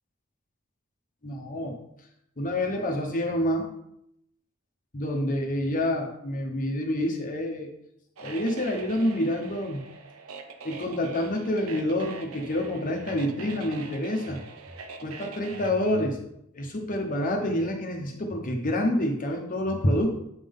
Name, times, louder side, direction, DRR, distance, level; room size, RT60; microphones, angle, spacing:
voice 1, 1.2-1.8 2.4-3.7 4.9-7.7 8.2-9.8 10.6-14.4 15.0-16.2 16.5-20.1, left 1 dB, 40° left, 1 dB, 1.0 m, -27 dB
sound 1, 8.2-15.7, right 4 dB, 75° right, 0.7 m, -43 dB
8.2 x 3.7 x 5.4 m, 0.78 s
head